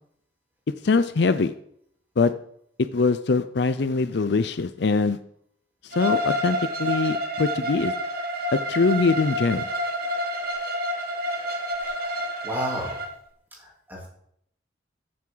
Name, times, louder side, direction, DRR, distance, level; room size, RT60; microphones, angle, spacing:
voice 1, 0.8-1.5 2.2-2.3 2.8-5.2 5.8-7.9 8.5-9.7, left 4 dB, 60° left, 12 dB, 0.5 m, -23 dB
Bowed string instrument, 5.9-13.1, equal, 50° right, 1.3 m, -28 dB
sound 1, 7.9-8.4 8.9-9.4 9.9-10.4 10.9-11.4 11.9-12.4, equal, 80° right, 1.3 m, -44 dB
voice 2, 11.9-13.0 13.6-14.1, equal, 10° right, -3 dB, 3.4 m, -34 dB
14.0 x 7.5 x 4.0 m, 0.69 s
head